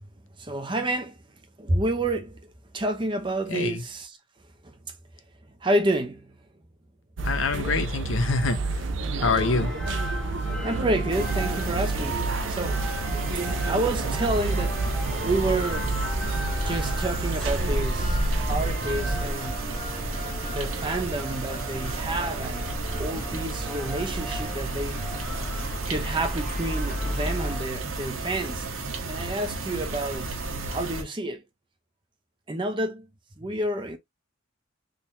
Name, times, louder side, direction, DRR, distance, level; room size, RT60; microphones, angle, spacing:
voice 1, 0.4-1.2 1.6-2.5 2.7-4.2 4.6-4.8 5.6-6.3 9.2-9.4 10.6-12.8 13.7-14.8 15.2-15.9 16.6-18.2 18.5-19.7 20.4-22.7 23.0-25.1 25.9-28.7 29.1-30.4 30.7-31.4 32.5-33.1 33.4-34.0, right 1 dB, 25° right, 0.7 m, -29 dB
voice 2, 3.5-3.8 7.2-8.6 9.2-9.7, left 4 dB, 80° left, 0.7 m, -25 dB
sound 1, 7.2-19.3, right 3 dB, 70° right, 0.6 m, -30 dB
sound 2, 9.3-27.6, equal, 5° left, 1.1 m, -33 dB
sound 3, 11.1-31.0, right 3 dB, 85° right, 1.0 m, -33 dB
3.6 x 2.8 x 2.8 m
head